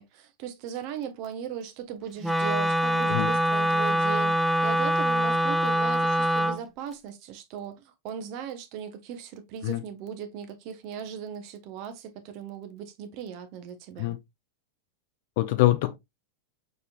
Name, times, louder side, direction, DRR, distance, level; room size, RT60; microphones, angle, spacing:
voice 1, 0.0-14.2, right 8 dB, 45° right, 0.9 m, -38 dB
Wind instrument woodwind instrument, 2.2-6.6, right 1 dB, ahead, 0.5 m, -24 dB
voice 2, 15.4-16.0, left 16 dB, 50° left, 0.5 m, -24 dB
5.2 x 4.1 x 2.3 m
figure-of-eight pair, 90°, 0 cm